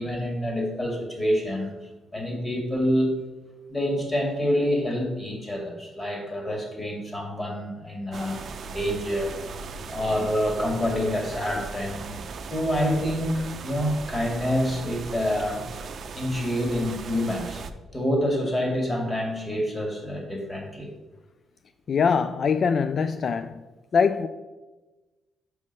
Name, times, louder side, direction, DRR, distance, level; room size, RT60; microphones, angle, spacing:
voice 1, 0.0-1.7 2.1-3.1 3.7-9.4 9.9-12.2 12.5-15.6 16.2-17.6 17.9-20.9, equal, 25° left, 2.2 m, -27 dB
sound 1, 8.1-17.7, right 4 dB, 55° right, 0.5 m, -38 dB
voice 2, 21.9-23.6 23.9-24.3, left 6 dB, 55° left, 0.3 m, -23 dB
6.3 x 5.3 x 5.4 m
cardioid pair, 75°, 0 cm